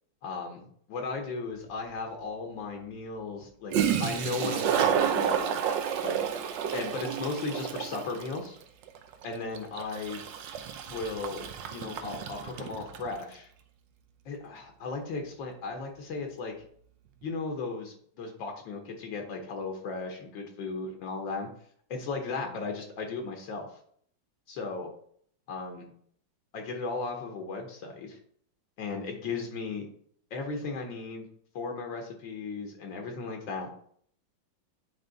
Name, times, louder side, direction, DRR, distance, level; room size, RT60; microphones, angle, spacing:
voice 1, 0.2-3.7 4.0-6.2 6.7-8.6 9.2-10.3 10.9-13.5 14.2-16.5 17.2-21.5 21.9-23.7 24.5-24.9 25.5-25.9 26.5-28.2 28.8-29.9 30.3-31.3 31.5-33.7, left 4 dB, 75° left, 3 dB, 1.7 m, -36 dB
Toilet flush, 1.7-1.8 3.4-3.5 3.7-13.1, right 8 dB, 75° right, 1.3 m, -30 dB
9.1 x 3.5 x 4.0 m, 0.62 s
omnidirectional pair, 2.1 m